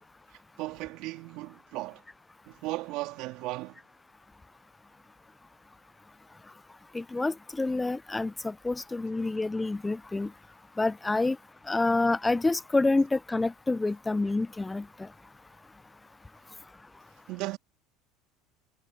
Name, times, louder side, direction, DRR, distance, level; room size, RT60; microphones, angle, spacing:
voice 1, 0.6-2.0 2.5-3.8 17.3-17.6, right 20 dB, 65° right, 3.5 m, -36 dB
voice 2, 6.9-10.3 10.8-11.4 11.7-14.8, left 2 dB, 15° left, 0.3 m, -27 dB
hypercardioid pair, 85°, 0 cm